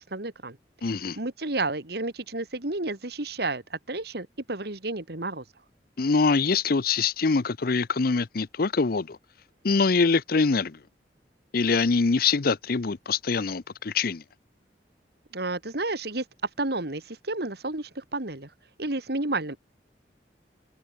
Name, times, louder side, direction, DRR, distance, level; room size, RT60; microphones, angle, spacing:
voice 1, 0.1-0.6 1.2-5.4 15.3-16.2 16.6-18.5 18.8-19.6, right 2 dB, 65° right, 2.4 m, -31 dB
voice 2, 0.8-1.2 6.0-9.2 9.6-10.8 11.5-14.2, left 4 dB, 55° left, 0.7 m, -24 dB
head